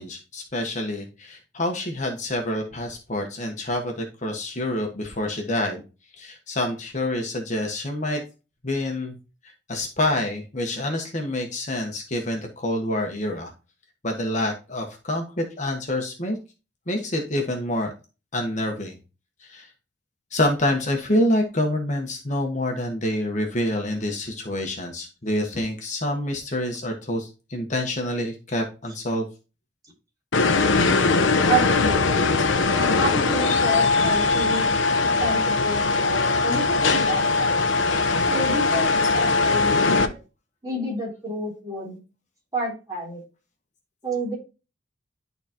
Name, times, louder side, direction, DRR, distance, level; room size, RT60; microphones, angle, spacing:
voice 1, 0.0-5.8 6.2-8.2 8.6-9.1 9.4-13.5 14.0-16.4 16.9-17.9 18.3-19.0 19.4-19.7 20.3-29.2, left 1 dB, 40° left, 2 dB, 1.3 m, -27 dB
sound 1, 30.3-40.1, left 3 dB, 85° left, 0.8 m, -20 dB
voice 2, 31.4-32.3 33.0-34.6 35.2-37.6 38.3-40.2 40.6-42.0 42.5-43.2 44.0-44.4, right 1 dB, 20° right, -4 dB, 3.3 m, -29 dB
11.5 x 4.0 x 2.9 m, 0.30 s
head